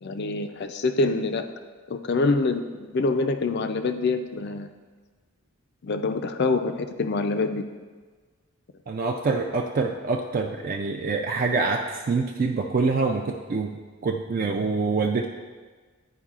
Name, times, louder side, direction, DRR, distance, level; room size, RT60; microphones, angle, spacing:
voice 1, 0.0-1.4 1.9-4.7 5.8-7.7, left 3 dB, 50° left, 8 dB, 0.4 m, -25 dB
voice 2, 8.9-13.8 14.0-15.3, right 4 dB, 40° right, 1 dB, 0.3 m, -25 dB
10.0 x 4.6 x 2.4 m, 1.4 s
head